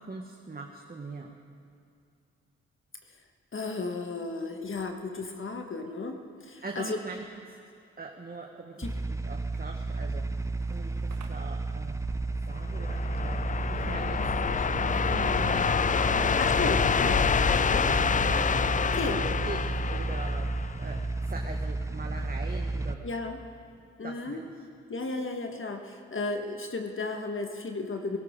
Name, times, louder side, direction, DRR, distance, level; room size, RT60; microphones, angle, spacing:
voice 1, 0.0-1.3 6.6-7.5 8.0-10.3 10.7-12.0 12.5-16.7 17.7-19.6 19.9-20.5 20.8-23.0 23.8-24.6, right 3 dB, 30° right, 2 dB, 1.4 m, -42 dB
voice 2, 3.5-7.0 8.8-8.9 16.4-17.3 18.9-19.2 23.0-23.4 24.0-24.4 24.9-28.2, left 3 dB, 40° left, 4 dB, 1.5 m, -34 dB
sound 1, 8.8-22.9, right 2 dB, 10° right, 0.8 m, -32 dB
sound 2, 10.1-12.6 12.9-13.4 13.8-14.1 14.3-15.7 16.0-18.3, right 4 dB, 65° right, 1.7 m, -46 dB
sound 3, 12.5-21.0, left 6 dB, 25° left, 0.4 m, -27 dB
18.5 x 17.5 x 3.8 m, 2.4 s
hypercardioid pair, 40°, 30 cm